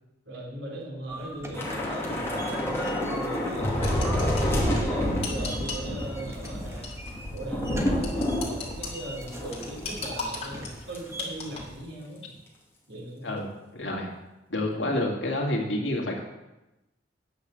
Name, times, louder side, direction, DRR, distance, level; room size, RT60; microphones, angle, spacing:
voice 1, 0.3-3.8 4.1-6.9 7.3-12.2 12.9-13.4, right 1 dB, 85° right, -3 dB, 3.7 m, -39 dB
sound 1, 1.1-11.8, right 1 dB, 15° right, 1.3 m, -42 dB
Thunder / Rain, 1.5-10.1 10.4-10.6 10.9-11.2, left 1 dB, 15° left, 2.5 m, -29 dB
sound 2, 3.8-5.9 6.4-6.5 6.8-7.1 7.4-7.5 8.0-8.9 9.3-11.6, left 4 dB, 35° left, 2.6 m, -36 dB
voice 2, 13.2-14.1 14.5-16.2, left 1 dB, 70° left, 0 dB, 2.2 m, -29 dB
9.4 x 6.7 x 7.6 m, 0.99 s
head